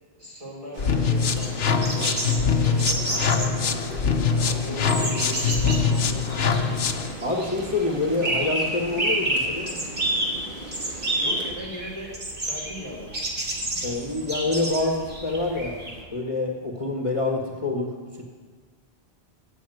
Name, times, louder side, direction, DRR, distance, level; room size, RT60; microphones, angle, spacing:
voice 1, 0.1-3.9 4.3-6.8 11.1-13.2, equal, 35° right, -4 dB, 4.9 m, -39 dB
Rain, 0.7-11.5, right 1 dB, 55° right, 2.5 m, -38 dB
sound 1, 0.8-7.1, left 6 dB, 75° left, 1.1 m, -23 dB
sound 2, 1.1-16.0, right 1 dB, 90° right, 2.9 m, -30 dB
voice 2, 7.2-9.8 13.8-15.8 16.1-18.2, left 2 dB, 30° left, 0 dB, 1.4 m, -26 dB
16.5 x 7.1 x 9.2 m, 1.5 s
omnidirectional pair, 1.0 m